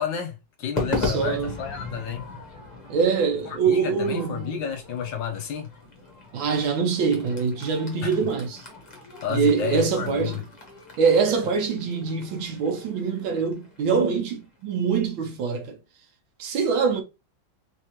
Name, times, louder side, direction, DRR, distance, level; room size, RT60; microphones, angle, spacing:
voice 1, 0.0-2.3 3.5-5.7 8.0-8.2 9.2-10.4, left 7 dB, 70° left, 1.2 m, -31 dB
Crowd / Fireworks, 0.8-15.2, left 2 dB, 30° left, 0.8 m, -37 dB
voice 2, 1.0-1.5 2.9-4.7 6.3-8.6 9.3-10.4 11.0-15.8 16.4-17.0, right 5 dB, 70° right, 1.5 m, -24 dB
3.5 x 3.4 x 2.9 m
omnidirectional pair, 2.3 m